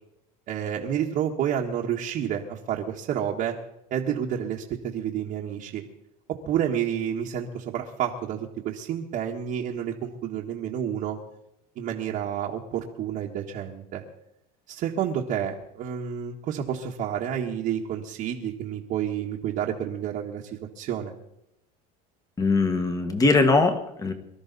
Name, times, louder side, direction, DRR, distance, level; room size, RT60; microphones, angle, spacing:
voice 1, 0.5-3.6 3.9-5.8 6.4-11.2 11.8-14.0 14.7-21.1, right 9 dB, 45° right, -1 dB, 1.5 m, -29 dB
voice 2, 22.4-24.1, left 3 dB, 20° left, 8 dB, 1.6 m, -21 dB
23.5 x 13.0 x 4.1 m, 0.86 s
cardioid pair, 145°, 20 cm